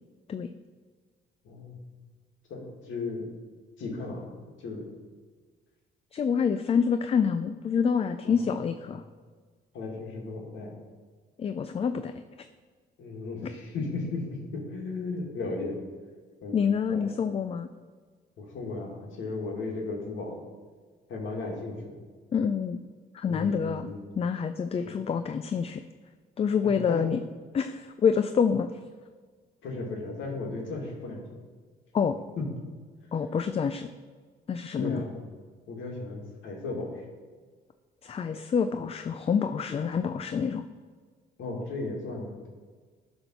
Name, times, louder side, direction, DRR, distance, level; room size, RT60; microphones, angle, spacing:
voice 1, 1.4-1.8 2.5-3.3 3.8-4.3 4.6-4.9 8.2-8.5 8.8-9.0 9.7-10.8 13.0-15.8 16.4-16.6 16.9-17.1 18.4-20.4 21.1-22.0 23.3-24.1 24.8-25.0 26.6-27.2 29.6-31.4 32.4-32.5 34.7-35.2 35.7-37.0 41.4-42.5, left 3 dB, 75° left, -1 dB, 1.7 m, -35 dB
voice 2, 6.1-9.0 11.4-12.1 16.5-17.7 22.3-22.8 23.1-23.9 24.2-25.8 26.4-27.2 27.5-28.7 31.9-32.2 33.1-33.9 34.5-35.0 38.0-40.6, left 6 dB, 30° left, 9 dB, 0.3 m, -27 dB
10.0 x 3.5 x 6.1 m, 1.5 s
cardioid pair, 90°, 20 cm